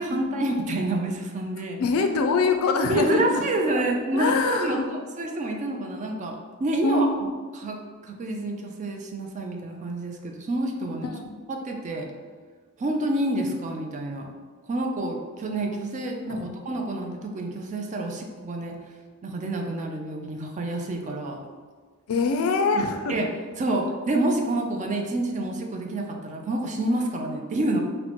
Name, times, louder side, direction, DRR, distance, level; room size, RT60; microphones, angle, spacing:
voice 1, 0.0-1.8 2.8-7.3 7.5-11.1 11.5-12.1 12.8-14.3 14.7-18.8 19.2-21.4 22.7-22.8 23.1-23.3 23.6-27.8, right 1 dB, 35° right, 2 dB, 0.3 m, -28 dB
voice 2, 1.8-3.4 3.7-3.8 4.1-4.9 6.8-7.3 11.0-11.4 16.3-16.5 22.1-23.2, left 3 dB, 70° left, 5 dB, 0.3 m, -24 dB
4.2 x 2.1 x 2.9 m, 1.5 s
head